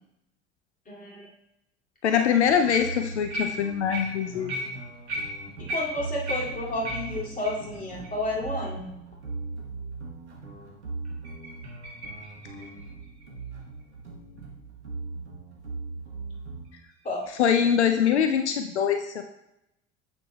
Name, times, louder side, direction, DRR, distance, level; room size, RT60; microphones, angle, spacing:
voice 1, 0.9-1.3 5.6-8.9 17.0-17.3, left 1 dB, 25° left, -3 dB, 2.5 m, -31 dB
voice 2, 2.0-4.6 17.4-19.2, left 8 dB, 80° left, 7 dB, 0.5 m, -23 dB
sound 1, 2.1-2.4 2.7-7.7 8.0-8.1 8.6-8.7 9.2-9.3 11.0-13.8 16.6-18.2, right 1 dB, 70° right, 2.6 m, -36 dB
sound 2, 2.4-16.6, right 3 dB, 85° right, 1.2 m, -39 dB
9.6 x 7.2 x 2.2 m, 0.86 s
figure-of-eight pair, 65°, 33 cm